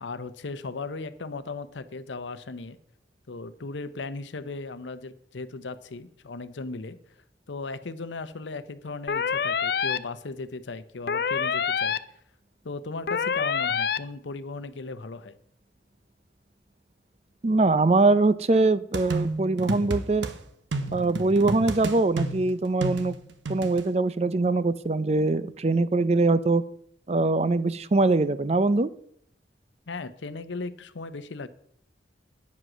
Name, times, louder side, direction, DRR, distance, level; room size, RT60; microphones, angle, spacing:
voice 1, 0.0-2.8 3.3-7.0 7.5-11.9 12.6-15.4 29.9-31.5, left 3 dB, 85° left, 13 dB, 0.7 m, -37 dB
sound 1, 9.1-10.0 11.1-12.0 13.1-14.0, left 6 dB, 55° left, 0.4 m, -26 dB
voice 2, 17.4-20.3 20.9-23.1 23.5-26.6 27.1-28.9, right 3 dB, 35° right, 15 dB, 0.4 m, -22 dB
sound 2, 18.9-20.3 20.7-23.8, right 2 dB, 85° right, 1.0 m, -31 dB
9.4 x 7.7 x 6.1 m, 0.69 s
head